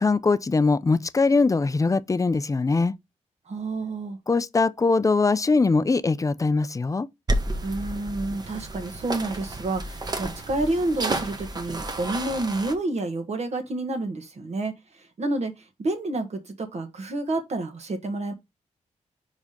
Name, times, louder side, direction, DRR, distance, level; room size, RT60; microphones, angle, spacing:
voice 1, 0.0-2.9 4.3-7.1, left 3 dB, 25° left, 0.5 m, -22 dB
voice 2, 3.5-4.2 7.6-14.7 15.0-15.5 15.8-18.3, right 2 dB, 60° right, 1.6 m, -29 dB
sound 1, 7.3-12.7, right 2 dB, 30° right, 1.1 m, -31 dB
5.0 x 4.2 x 5.0 m
cardioid pair, 90°, 13 cm